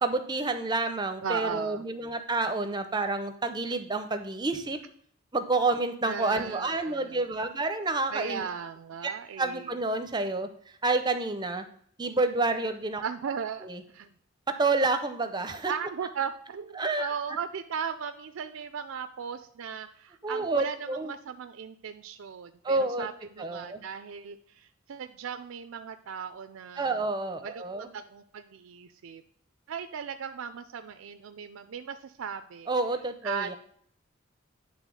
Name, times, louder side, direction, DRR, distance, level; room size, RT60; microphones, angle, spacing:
voice 1, 0.0-4.8 5.3-8.5 9.0-9.1 9.4-10.5 10.8-11.6 12.0-13.0 13.6-13.8 14.5-15.7 16.8-17.1 20.2-21.1 22.6-23.1 23.4-23.8 26.8-27.9 32.7-33.6, right 3 dB, 20° right, 9 dB, 0.6 m, -29 dB
voice 2, 1.2-1.8 6.0-7.2 8.1-9.7 13.0-14.1 15.7-27.0 27.4-29.2 29.7-32.7 33.2-33.6, right 7 dB, 75° right, 8 dB, 0.4 m, -37 dB
9.0 x 3.5 x 6.2 m, 0.62 s
head